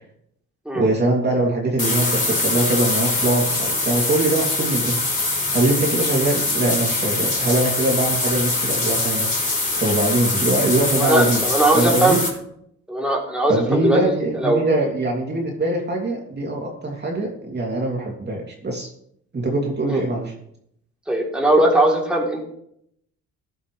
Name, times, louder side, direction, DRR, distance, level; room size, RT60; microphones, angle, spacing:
voice 1, 0.7-5.0 5.5-9.3 9.8-11.4 11.7-12.2 13.5-18.9 19.3-20.3, right 2 dB, 35° right, -1 dB, 3.2 m, -22 dB
sound 1, 1.8-12.3, left 2 dB, 25° left, 4.6 m, -23 dB
voice 2, 10.9-12.2 12.9-14.6 19.9-20.0 21.1-22.4, right 1 dB, 5° right, -2 dB, 3.7 m, -20 dB
16.0 x 11.0 x 3.4 m, 0.71 s
cardioid pair, 90°, 30 cm